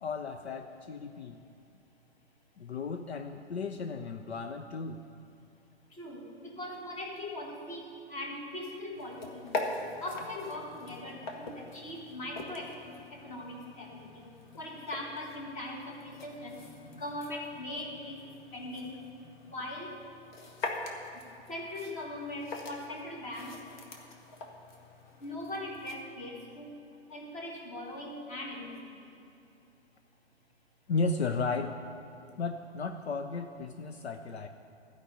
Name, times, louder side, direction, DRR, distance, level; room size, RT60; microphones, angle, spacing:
voice 1, 0.0-1.4 2.6-5.0 30.9-31.8 32.4-34.5, left 4 dB, 65° left, 6 dB, 0.7 m, -34 dB
voice 2, 6.0-9.5 10.0-14.3 14.6-16.6 16.9-18.2 18.5-19.0 19.4-19.9 21.5-23.6 25.2-26.7 27.1-28.8, left 1 dB, 20° left, 0 dB, 1.7 m, -40 dB
sound 1, 8.9-25.9, left 2 dB, 45° left, 1.4 m, -43 dB
13.5 x 5.3 x 8.0 m, 2.7 s
figure-of-eight pair, 120°, 34 cm